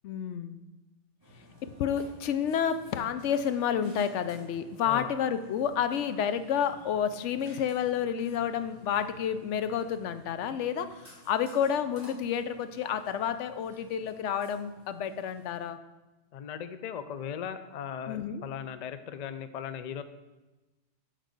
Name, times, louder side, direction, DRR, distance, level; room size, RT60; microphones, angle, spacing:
voice 1, 0.0-0.6 1.6-15.8 18.1-18.4, left 8 dB, 85° left, 12 dB, 0.9 m, -30 dB
Burping eructation, 1.2-15.6, left 1 dB, 20° right, 2.5 m, -54 dB
voice 2, 16.3-20.0, left 8 dB, 55° left, 12 dB, 0.4 m, -38 dB
8.1 x 3.9 x 6.5 m, 1.1 s
omnidirectional pair, 1.2 m